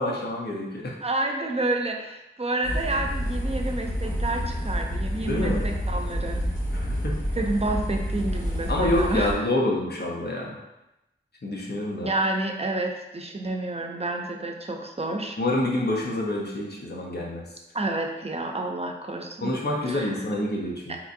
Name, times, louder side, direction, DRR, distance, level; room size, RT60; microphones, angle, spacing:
voice 1, 0.0-0.9 5.3-5.7 6.7-7.1 8.7-10.6 11.4-12.1 15.4-17.4 19.4-20.9, left 1 dB, 55° left, -2 dB, 0.9 m, -27 dB
voice 2, 1.0-6.4 7.3-9.4 12.0-15.4 17.7-19.6 19.9-20.1 20.9-21.0, right 2 dB, 30° right, 2 dB, 0.5 m, -29 dB
sound 1, 2.6-9.3, equal, 70° left, 1.5 m, -28 dB
3.9 x 3.0 x 2.6 m, 0.93 s
wide cardioid pair, 50°, 20 cm